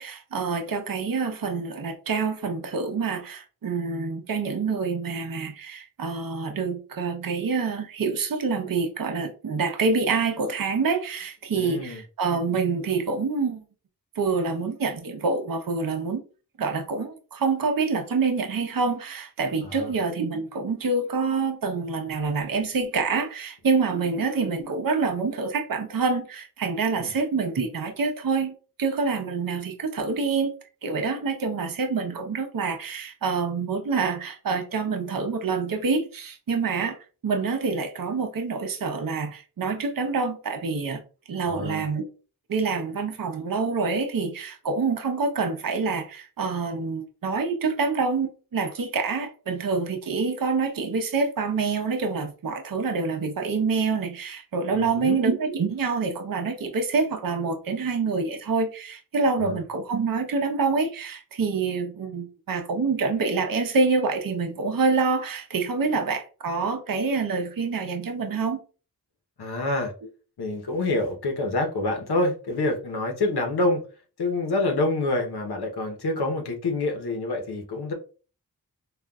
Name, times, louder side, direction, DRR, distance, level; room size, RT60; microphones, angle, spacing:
voice 1, 0.0-13.6 14.2-16.2 16.6-28.5 28.8-30.5 30.8-37.0 37.2-41.0 41.3-42.1 42.5-68.6, right 4 dB, 60° right, 0.7 m, -26 dB
voice 2, 11.5-12.0 19.6-19.9 27.0-27.1 41.4-41.8 54.7-55.2 59.4-59.6 69.4-69.9 70.4-73.8 74.2-77.9, left 2 dB, 85° left, 0.9 m, -27 dB
3.8 x 2.4 x 2.3 m
cardioid pair, 55°, 38 cm